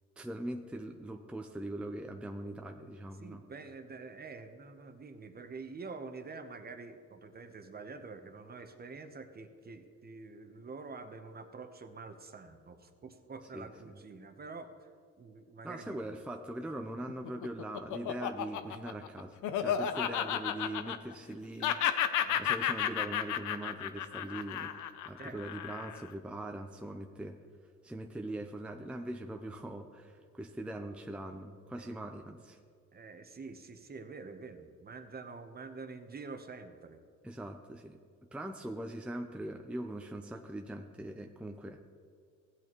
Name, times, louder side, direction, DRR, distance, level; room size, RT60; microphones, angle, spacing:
voice 1, 0.2-3.4 13.5-14.0 15.6-24.7 25.0-27.4 27.8-32.6 37.2-38.0 38.3-41.8, right 1 dB, 5° right, 4 dB, 0.5 m, -41 dB
voice 2, 3.2-14.9 15.2-16.1 22.2-22.5 25.2-25.4 31.7-32.0 32.9-37.0, right 4 dB, 30° right, 8 dB, 0.9 m, -47 dB
Laughter, 17.1-21.3 21.6-26.1, left 10 dB, 85° left, 0.6 m, -33 dB
15.5 x 8.4 x 3.1 m, 2.1 s
cardioid pair, 90°, 30 cm